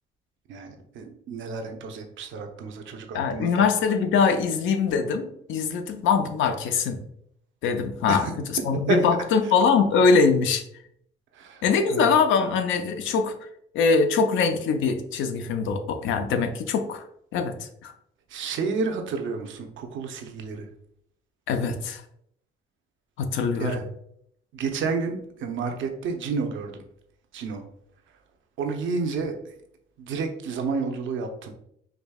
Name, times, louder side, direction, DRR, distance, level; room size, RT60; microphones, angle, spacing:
voice 1, 0.5-3.7 8.1-8.3 8.9-9.0 9.4-9.5 11.3-12.2 18.3-20.7 23.6-23.8 24.5-26.8 27.3-27.6 28.6-29.5 30.0-31.5, right 4 dB, 75° right, 4 dB, 0.7 m, -30 dB
voice 2, 3.1-7.0 7.6-8.2 8.6-10.6 11.6-13.3 13.7-17.0 17.3-17.6 17.8-17.9 21.5-22.0 23.2-23.7, left 5 dB, 80° left, 7 dB, 0.5 m, -22 dB
4.9 x 2.7 x 2.3 m, 0.71 s
cardioid pair, 90°, 20 cm